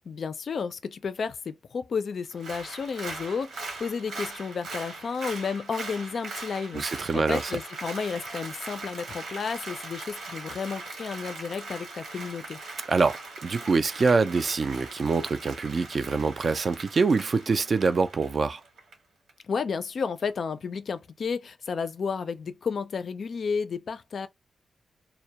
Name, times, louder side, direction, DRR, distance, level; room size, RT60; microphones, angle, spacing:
voice 1, 0.1-12.6 19.4-24.3, left 5 dB, 55° left, 0.3 m, -32 dB
Applause, 2.3-18.9 19.3-19.4, right 3 dB, 85° right, 1.0 m, -40 dB
voice 2, 6.7-7.5 12.9-13.2 13.4-18.6, right 4 dB, 40° right, 0.3 m, -25 dB
2.2 x 2.0 x 2.7 m
wide cardioid pair, 140°, 0 cm